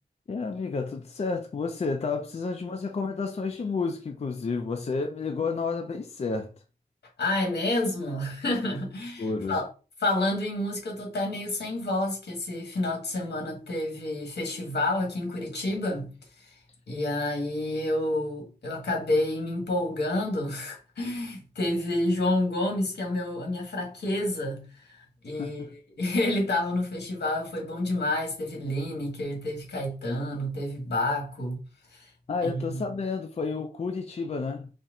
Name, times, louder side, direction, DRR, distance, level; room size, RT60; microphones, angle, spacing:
voice 1, 0.3-6.5 9.2-9.6 25.4-25.7 32.3-34.7, left 4 dB, 40° left, 0.4 m, -31 dB
voice 2, 7.2-9.7 10.0-16.1 16.4-16.5 16.9-25.6 26.0-31.6 31.9-32.1 32.4-32.8, left 1 dB, 85° left, 1.5 m, -29 dB
4.3 x 2.1 x 3.7 m
wide cardioid pair, 115°, 17 cm